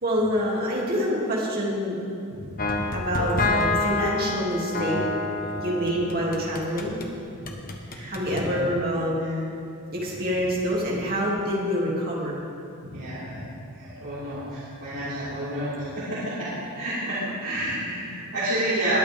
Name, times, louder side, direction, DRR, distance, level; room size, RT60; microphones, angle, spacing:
voice 1, 0.0-2.0 2.9-5.0 5.6-7.0 8.1-9.6 9.9-12.4, equal, 45° right, -4 dB, 2.7 m, -26 dB
sound 1, 2.6-7.1 7.5-8.5, left 2 dB, 40° left, 1.1 m, -28 dB
voice 2, 7.9-8.6 9.2-9.4 12.8-13.5 13.7-19.0, right 1 dB, 80° right, -13 dB, 3.5 m, -30 dB
20.5 x 9.1 x 3.6 m, 2.5 s
head